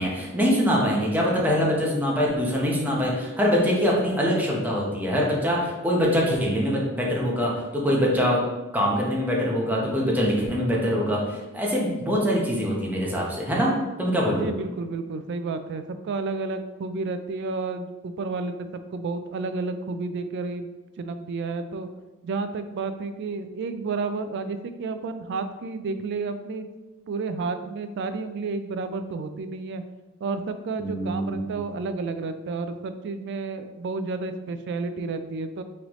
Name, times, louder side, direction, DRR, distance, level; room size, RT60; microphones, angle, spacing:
voice 1, 0.0-7.5 7.8-8.4 8.7-13.7 14.0-14.5 30.8-31.5, equal, 10° right, -4 dB, 0.8 m, -23 dB
voice 2, 14.3-20.7 21.0-21.9 22.2-26.7 27.1-29.8 30.2-35.6, right 3 dB, 55° right, 10 dB, 0.3 m, -31 dB
3.8 x 3.2 x 3.0 m, 1.1 s
head